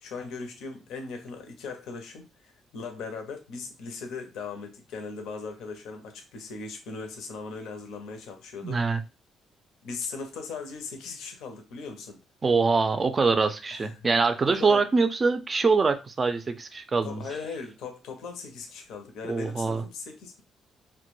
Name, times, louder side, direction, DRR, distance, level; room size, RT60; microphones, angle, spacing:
voice 1, 0.0-8.8 9.8-12.2 13.7-13.9 14.5-14.8 17.0-20.4, left 4 dB, 85° left, 0.6 m, -39 dB
voice 2, 8.6-9.0 12.4-17.2 19.2-19.8, right 4 dB, 35° right, 0.4 m, -24 dB
2.2 x 2.1 x 3.0 m
cardioid pair, 90°, 0 cm